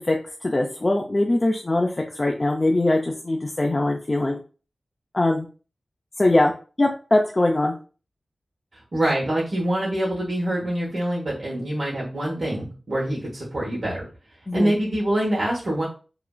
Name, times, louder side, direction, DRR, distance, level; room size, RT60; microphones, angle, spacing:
voice 1, 0.4-1.9 2.2-4.4 5.1-5.5 6.2-6.5 6.8-7.7 14.5-14.7, left 2 dB, 30° left, 1 dB, 0.3 m, -21 dB
voice 2, 8.7-14.0 14.5-15.8, right 1 dB, 60° right, -6 dB, 0.8 m, -25 dB
2.9 x 2.4 x 2.2 m, 0.36 s
wide cardioid pair, 80°, 0 cm